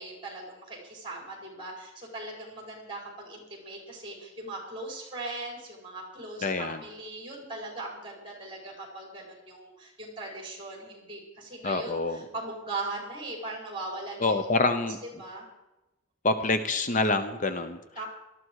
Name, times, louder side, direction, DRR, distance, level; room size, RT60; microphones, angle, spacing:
voice 1, 0.0-14.4 15.0-15.5 18.0-18.1, right 2 dB, 25° right, 0 dB, 5.1 m, -39 dB
voice 2, 6.4-6.8 11.6-12.2 14.2-15.0 16.2-17.8, left 3 dB, 40° left, 9 dB, 0.8 m, -26 dB
18.5 x 13.5 x 4.8 m, 0.98 s
head